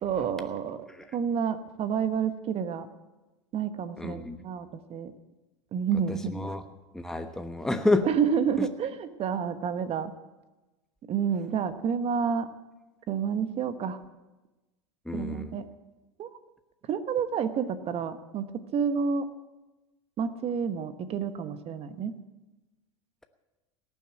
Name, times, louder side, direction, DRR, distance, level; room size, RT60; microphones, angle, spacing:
voice 1, 0.0-0.8 1.1-2.9 3.5-5.1 5.7-6.3 8.0-10.1 11.1-12.5 13.1-14.0 15.1-15.6 16.2-16.3 16.9-19.3 20.2-22.1, right 7 dB, 40° right, 11 dB, 1.1 m, -29 dB
voice 2, 4.0-4.4 6.1-6.6 6.9-8.1 8.6-8.7 15.0-15.6, left 2 dB, 5° left, 6 dB, 1.1 m, -29 dB
18.0 x 7.4 x 8.9 m, 1.1 s
hypercardioid pair, 85°, 16 cm